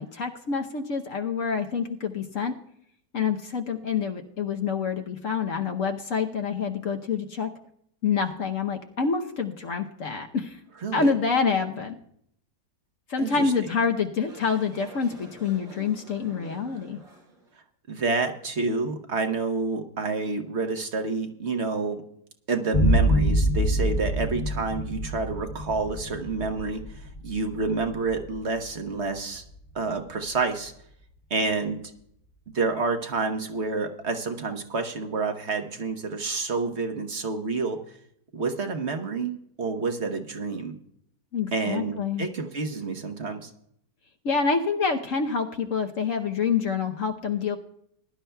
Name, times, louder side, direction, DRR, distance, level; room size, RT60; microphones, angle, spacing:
voice 1, 0.0-2.5 3.1-7.5 8.0-10.6 10.9-12.0 13.1-17.0 41.3-42.3 44.2-47.6, left 5 dB, 55° left, 3 dB, 1.1 m, -27 dB
voice 2, 13.2-13.5 17.9-22.0 22.5-29.4 29.7-30.7 31.3-31.8 32.5-37.8 38.3-40.7 41.5-43.5, right 4 dB, 45° right, 6 dB, 1.2 m, -29 dB
sound 1, 14.3-17.5, right 1 dB, 85° right, 3.5 m, -48 dB
sound 2, 22.7-30.1, equal, 40° left, 1.4 m, -26 dB
21.0 x 11.5 x 2.3 m, 0.70 s
omnidirectional pair, 1.8 m